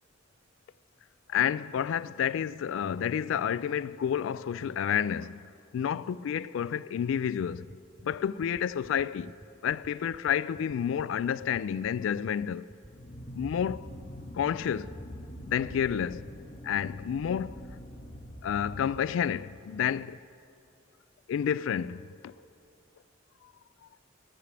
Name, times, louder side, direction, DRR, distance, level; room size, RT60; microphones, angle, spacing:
voice 1, 1.3-5.4 5.7-7.8 8.0-9.3 9.6-12.7 13.3-13.9 14.3-14.9 15.5-16.3 16.6-17.7 18.4-20.2 21.3-22.3, left 8 dB, 80° left, 0.3 m, -30 dB
sound 1, 7.7-16.6, right 1 dB, 10° right, 0.3 m, -51 dB
sound 2, 12.8-19.4, equal, 50° left, 1.0 m, -44 dB
15.5 x 14.5 x 3.3 m
head